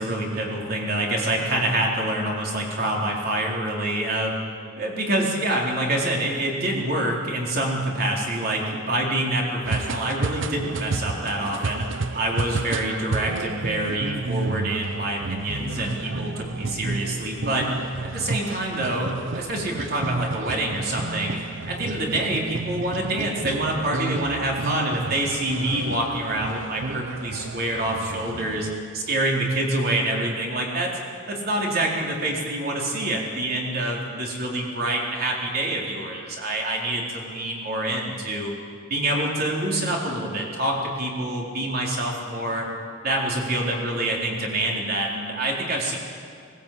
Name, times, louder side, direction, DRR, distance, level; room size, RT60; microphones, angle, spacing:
voice 1, 0.0-4.3 4.8-17.7 18.0-21.4 21.7-28.7 28.9-30.9 31.3-38.5 38.9-42.7 43.0-46.0, right 1 dB, 50° right, -1 dB, 4.0 m, -26 dB
sound 1, 9.6-28.8, right 3 dB, 70° right, 0.7 m, -31 dB
20.0 x 18.0 x 8.7 m, 2.4 s
head